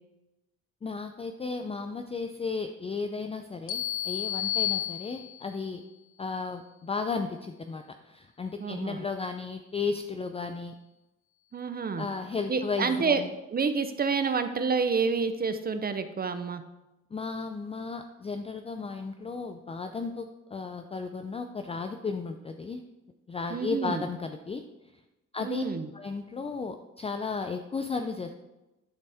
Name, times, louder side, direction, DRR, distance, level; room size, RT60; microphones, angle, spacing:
voice 1, 0.8-5.8 6.2-10.7 12.0-13.3 17.1-22.8 23.3-24.6 25.3-25.6 25.9-28.3, left 4 dB, 20° left, 7 dB, 0.4 m, -34 dB
sound 1, 3.7-5.6, left 12 dB, 85° left, 0.7 m, -31 dB
voice 2, 8.6-9.0 11.5-12.1 12.5-13.2 13.5-16.6 23.5-24.1 25.4-25.9, right 5 dB, 30° right, 10 dB, 0.6 m, -28 dB
11.5 x 4.1 x 3.4 m, 0.99 s
cardioid pair, 90°, 30 cm